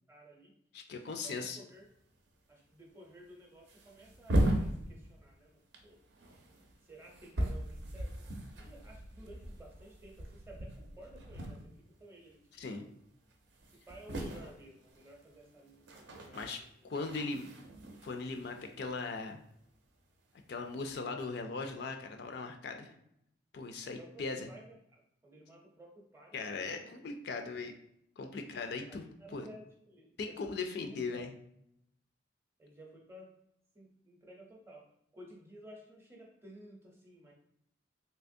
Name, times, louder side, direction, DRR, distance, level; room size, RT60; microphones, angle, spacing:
voice 1, 0.1-0.5 1.1-1.9 2.5-6.0 6.8-8.2 8.5-12.8 13.7-16.9 22.8-23.0 23.8-26.9 28.4-28.5 28.9-31.2 32.6-33.3 33.7-34.9 35.1-37.3, right 1 dB, 15° right, 0 dB, 0.6 m, -55 dB
voice 2, 0.7-1.6 12.5-12.9 16.3-16.6 16.8-17.5 18.0-19.4 20.5-22.9 23.5-24.5 26.3-27.7 28.2-29.5 30.2-31.3, left 4 dB, 55° left, 5 dB, 0.3 m, -39 dB
sound 1, 1.9-2.0 2.3-2.4 3.1-3.2 3.6-5.4 5.7-12.0 12.3-12.6 13.0-13.1 13.3-19.6 20.5-21.0, right 1 dB, 65° right, 0.5 m, -38 dB
3.3 x 2.9 x 2.6 m, 0.75 s
head